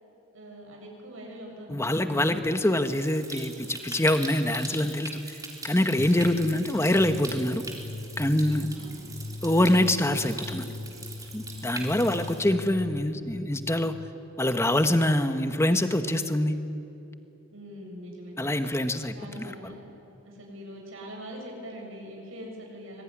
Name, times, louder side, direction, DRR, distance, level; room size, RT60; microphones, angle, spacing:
voice 1, 0.3-2.3 6.3-6.6 8.7-9.1 11.7-12.4 17.5-18.3 19.1-19.9 20.2-23.0, equal, 80° right, 0 dB, 7.3 m, -43 dB
voice 2, 1.7-7.6 8.2-8.7 9.4-10.7 11.3-13.9 14.4-16.5 18.4-19.7, left 1 dB, 15° left, 8 dB, 1.3 m, -25 dB
Stream, 2.8-12.4, right 3 dB, 15° right, 3.5 m, -42 dB
sound 1, 6.0-14.1, left 2 dB, 45° left, 0.7 m, -40 dB
25.0 x 22.0 x 10.0 m, 2.8 s
head